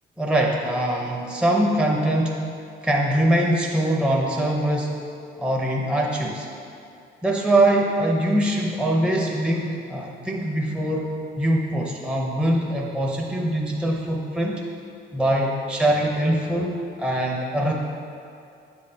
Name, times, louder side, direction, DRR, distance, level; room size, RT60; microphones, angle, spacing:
voice 1, 0.2-2.5 2.8-5.0 5.4-6.5 7.2-14.6 15.1-17.7, right 1 dB, 5° right, -1 dB, 0.6 m, -23 dB
7.2 x 5.3 x 2.8 m, 2.5 s
cardioid pair, 90°, 20 cm